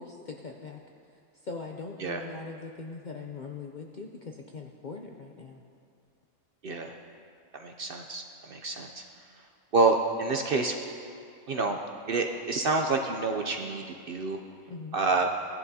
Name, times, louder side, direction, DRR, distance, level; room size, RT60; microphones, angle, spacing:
voice 1, 0.0-5.6 14.7-15.0, left 4 dB, 55° left, 1 dB, 0.5 m, -41 dB
voice 2, 6.6-7.0 7.5-9.0 9.7-10.8 11.5-11.8 12.1-14.4 14.9-15.3, right 3 dB, 55° right, 3 dB, 0.6 m, -28 dB
17.5 x 11.0 x 2.8 m, 2.5 s
omnidirectional pair, 1.4 m